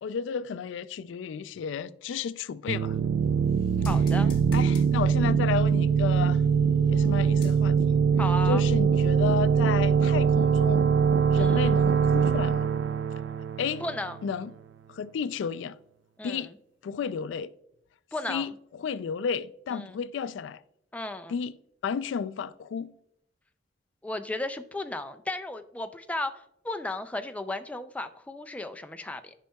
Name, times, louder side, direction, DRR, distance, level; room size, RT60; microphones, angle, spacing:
voice 1, 0.0-3.0 4.5-6.4 6.9-8.0 8.5-11.0 11.3-12.7 13.6-13.8 14.2-14.5 14.9-15.8 16.2-16.5 16.8-17.5 18.3-20.6 21.3-21.5 21.8-22.9, left 6 dB, 90° left, 0.3 m, -32 dB
sound 1, 2.7-14.2, right 7 dB, 70° right, 0.3 m, -23 dB
sound 2, 2.9-8.0 8.3-8.4, equal, 50° left, 1.3 m, -46 dB
voice 2, 3.9-4.3 8.2-8.6 11.3-11.6 13.8-14.2 16.2-16.5 18.1-18.5 19.7-20.0 20.9-21.4 24.0-29.3, left 2 dB, 10° left, 0.3 m, -34 dB
11.5 x 5.5 x 2.2 m
head